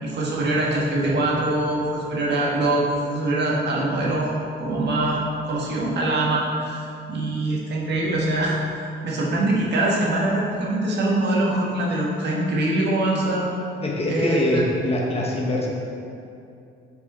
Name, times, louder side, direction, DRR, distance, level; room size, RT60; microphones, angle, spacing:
voice 1, 0.0-4.3 4.6-8.6 9.0-13.5 14.1-14.6, right 1 dB, 60° right, -4 dB, 1.5 m, -23 dB
voice 2, 13.8-15.7, left 1 dB, 30° left, -3 dB, 1.1 m, -23 dB
5.7 x 4.7 x 4.3 m, 2.6 s
cardioid pair, 90°, 20 cm